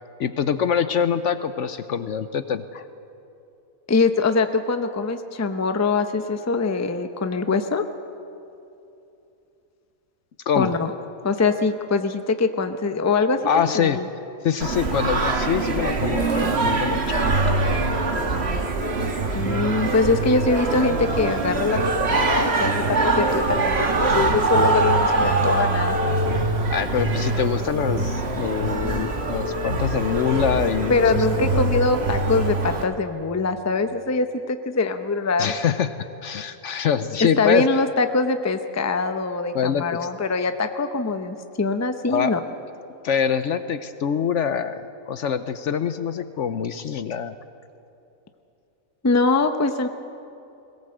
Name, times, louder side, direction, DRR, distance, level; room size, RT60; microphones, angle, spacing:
voice 1, 0.2-2.8 10.5-10.7 13.5-14.0 14.4-17.6 18.2-18.3 26.7-31.0 31.4-31.7 35.4-36.0 36.2-37.7 39.5-39.9 42.1-42.3 43.0-47.3, left 7 dB, 65° left, 12 dB, 0.9 m, -24 dB
voice 2, 3.9-7.8 10.5-10.9 11.2-14.1 19.3-26.0 30.9-35.5 37.4-42.4 49.0-49.9, left 3 dB, 15° left, 8 dB, 0.6 m, -23 dB
Singing, 14.6-32.8, right 2 dB, 45° right, 1.6 m, -23 dB
21.0 x 17.5 x 7.9 m, 2.8 s
omnidirectional pair, 1.5 m